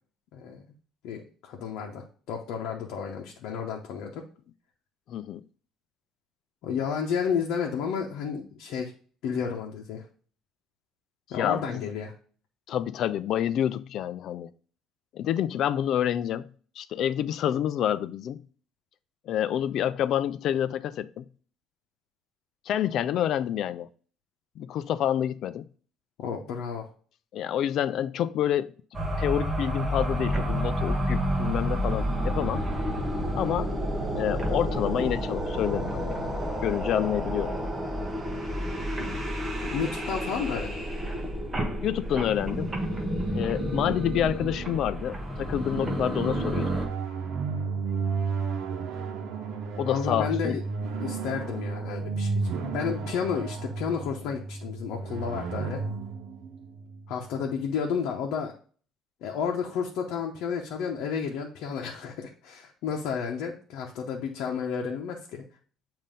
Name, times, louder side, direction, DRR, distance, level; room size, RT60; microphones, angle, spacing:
voice 1, 0.3-0.6 1.0-4.2 6.6-8.9 9.2-10.0 11.3-12.1 26.2-26.9 39.6-40.8 49.8-50.6 51.0-55.8 57.1-58.5 59.2-65.4, left 6 dB, 70° left, 0.8 m, -31 dB
voice 2, 5.1-5.4 11.4-11.9 12.7-14.5 15.1-18.4 19.3-21.3 22.7-23.9 24.6-25.6 27.3-28.7 29.2-32.7 33.3-33.7 34.2-36.2 36.6-37.6 41.8-42.7 43.3-46.8 49.8-50.6, left 10 dB, 50° left, 0.3 m, -28 dB
sound 1, 28.9-46.9, equal, 15° right, 0.9 m, -30 dB
sound 2, 45.8-57.5, right 4 dB, 65° right, 0.9 m, -33 dB
7.4 x 2.7 x 5.1 m
cardioid pair, 160°, 0 cm